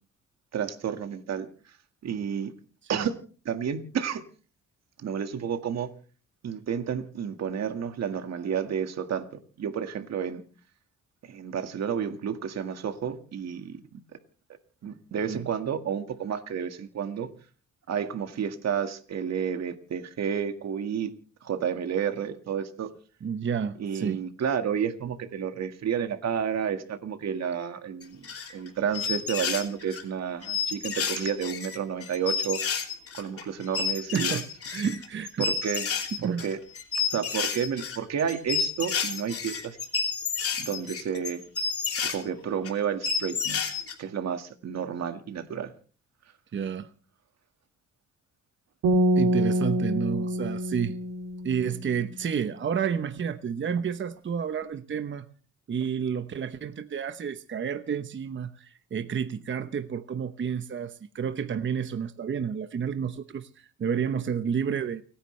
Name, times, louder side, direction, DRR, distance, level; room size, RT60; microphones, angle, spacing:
voice 1, 0.5-1.5 2.0-2.5 2.9-3.2 3.5-4.2 5.0-5.9 6.4-9.3 9.6-10.4 11.3-13.8 14.8-17.3 17.9-21.1 21.4-22.9 23.8-32.6 33.1-34.4 35.4-35.9 36.2-36.6 37.1-39.8 40.6-41.4 42.0-43.7 44.0-45.7, right 7 dB, 60° right, 7 dB, 1.9 m, -31 dB
voice 2, 23.2-24.2 34.1-35.5 36.2-36.5 46.5-46.9 49.2-51.0 51.4-55.3 55.7-65.0, right 7 dB, 40° right, 10 dB, 1.0 m, -30 dB
sound 1, 28.0-28.7 28.9-30.0 30.4-42.2 42.6-42.7 43.0-43.9, left 6 dB, 50° left, 3.1 m, -30 dB
sound 2, 48.8-52.0, equal, 85° right, 3.2 m, -26 dB
30.0 x 10.0 x 3.3 m, 0.40 s
cardioid pair, 90°, 30 cm